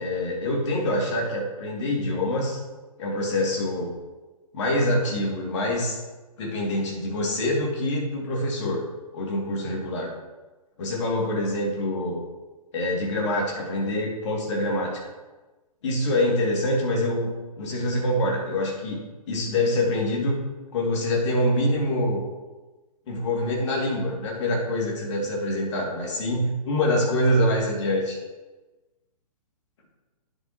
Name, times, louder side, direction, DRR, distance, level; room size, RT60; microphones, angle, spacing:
voice 1, 0.0-2.6 3.0-3.9 4.5-6.0 6.4-8.8 9.1-10.1 10.8-12.2 12.7-15.0 15.8-17.3 17.6-20.4 20.7-22.2 23.1-28.2, left 1 dB, 50° left, -1 dB, 2.6 m, -25 dB
9.8 x 7.9 x 3.1 m, 1.2 s
figure-of-eight pair, 120°, 19 cm